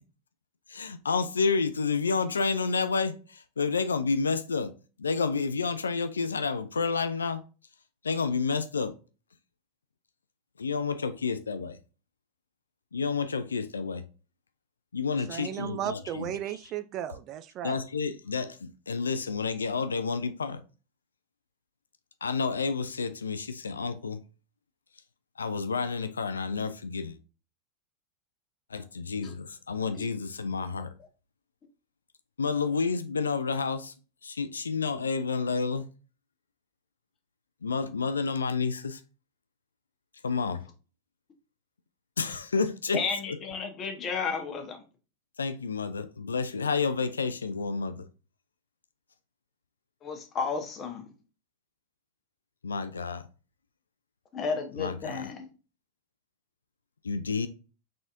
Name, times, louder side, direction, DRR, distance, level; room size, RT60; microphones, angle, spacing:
voice 1, 0.7-4.7 5.0-7.4 8.0-9.0 10.6-11.8 12.9-14.0 14.9-16.3 17.6-20.6 22.2-24.2 25.4-27.2 28.7-30.9 32.4-33.9 34.2-35.8 37.6-39.0 40.2-40.6 42.2-43.0 45.4-48.1 52.6-53.2 54.8-55.3 57.0-57.5, left 4 dB, 85° left, 0.3 m, -30 dB
voice 2, 15.3-17.8, right 10 dB, 40° right, 0.3 m, -35 dB
voice 3, 42.9-44.8 50.0-51.1 54.3-55.5, left 5 dB, 30° left, 1.1 m, -33 dB
4.0 x 3.7 x 2.6 m
hypercardioid pair, 90°, 0 cm